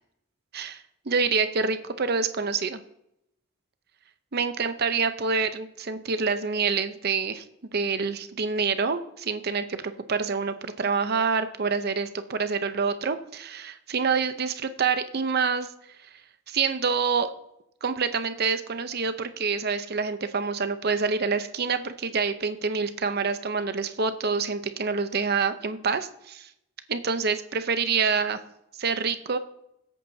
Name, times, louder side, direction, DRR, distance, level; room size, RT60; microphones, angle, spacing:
voice 1, 0.5-2.8 4.3-7.4 7.7-15.7 16.5-17.3 17.8-26.5 26.9-28.4 28.8-29.4, right 5 dB, 55° right, 10 dB, 0.7 m, -27 dB
21.0 x 8.4 x 2.8 m, 0.81 s
head